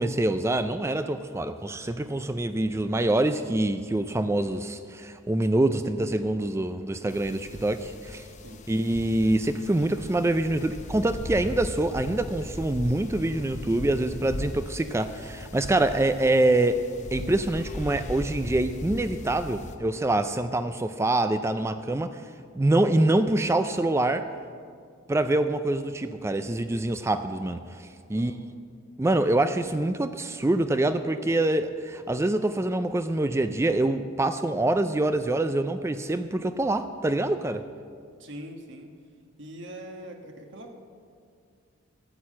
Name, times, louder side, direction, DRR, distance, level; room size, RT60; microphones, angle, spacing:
voice 1, 0.0-8.2 8.7-16.8 17.1-22.2 22.6-24.3 25.1-28.3 29.0-37.6, right 2 dB, 15° right, 10 dB, 0.3 m, -25 dB
sound 1, 7.1-19.8, left 1 dB, 35° left, 0.7 m, -39 dB
voice 2, 38.2-38.9 39.4-40.7, right 1 dB, 60° right, 4 dB, 1.3 m, -42 dB
12.5 x 8.4 x 7.5 m, 2.2 s
head